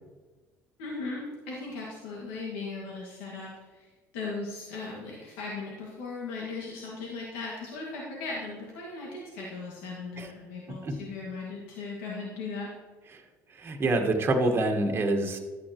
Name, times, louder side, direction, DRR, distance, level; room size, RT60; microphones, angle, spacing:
voice 1, 0.8-3.9 4.1-12.7, left 3 dB, 90° left, -3 dB, 2.0 m, -38 dB
voice 2, 10.7-11.0 13.1-13.2 13.5-15.4, right 2 dB, 35° right, 3 dB, 1.4 m, -26 dB
12.0 x 8.8 x 3.0 m, 1.3 s
supercardioid pair, 80°, 7 cm